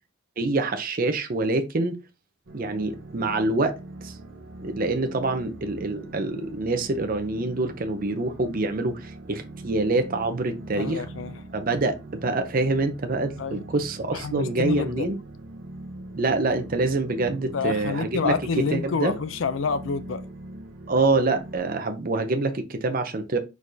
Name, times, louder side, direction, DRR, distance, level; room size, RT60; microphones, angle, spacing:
voice 1, 0.4-2.0 2.5-4.2 4.6-11.0 11.5-15.2 16.1-18.3 18.7-19.1 20.9-23.4, right 2 dB, 45° right, 0.6 m, -26 dB
sound 1, 2.5-21.6, right 2 dB, 75° right, 0.9 m, -42 dB
voice 2, 10.8-11.4 13.4-13.6 14.1-15.1 17.5-20.3, left 5 dB, 70° left, 0.5 m, -28 dB
4.7 x 4.2 x 2.7 m
head